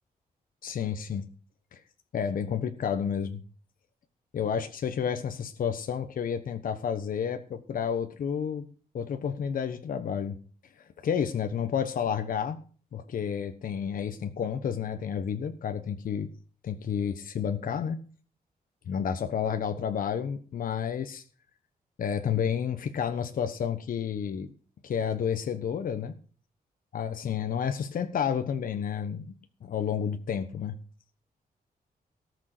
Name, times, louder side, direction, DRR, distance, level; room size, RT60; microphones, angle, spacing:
voice 1, 0.6-1.3 1.7-1.8 2.1-3.4 4.3-8.7 8.9-10.4 10.8-12.6 12.9-16.3 16.6-18.0 18.9-21.2 22.0-24.5 24.8-26.1 26.9-29.3 29.6-30.7, left 7 dB, 65° left, 8 dB, 1.2 m, -30 dB
18.5 x 6.4 x 6.7 m, 0.41 s
wide cardioid pair, 170°, 16 cm